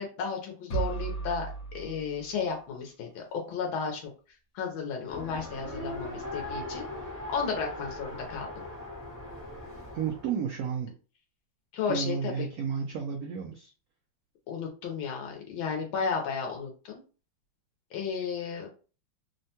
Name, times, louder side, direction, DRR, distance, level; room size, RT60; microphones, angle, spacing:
voice 1, 0.0-4.0 4.5-6.9 7.3-8.6 11.7-12.5 14.5-17.0 17.9-18.7, left 6 dB, 85° left, 1 dB, 1.5 m, -33 dB
sound 1, 0.7-2.7, right 6 dB, 55° left, 1.0 m, -35 dB
Race car auto racing, 5.1-10.3, left 1 dB, 10° left, 0.7 m, -39 dB
voice 2, 9.9-10.9 11.9-13.7, right 7 dB, 80° right, 2 dB, 0.8 m, -32 dB
3.5 x 2.1 x 2.7 m, 0.36 s
omnidirectional pair, 2.1 m